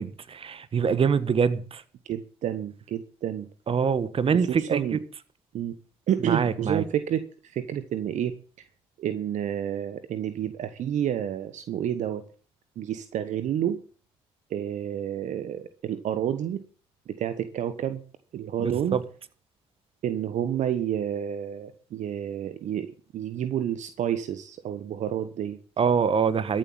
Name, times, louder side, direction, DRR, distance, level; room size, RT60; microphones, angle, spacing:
voice 1, 0.0-1.8 3.7-4.8 6.2-6.8 18.6-19.0 25.8-26.6, right 6 dB, 40° right, 1.4 m, -24 dB
voice 2, 2.1-3.5 4.3-5.0 5.5-5.8 6.1-8.4 9.0-12.2 12.8-13.8 14.5-16.6 17.1-18.0 18.3-19.0 20.0-25.6, right 10 dB, 60° right, 1.1 m, -29 dB
13.5 x 7.6 x 7.6 m
hypercardioid pair, 55°, 14 cm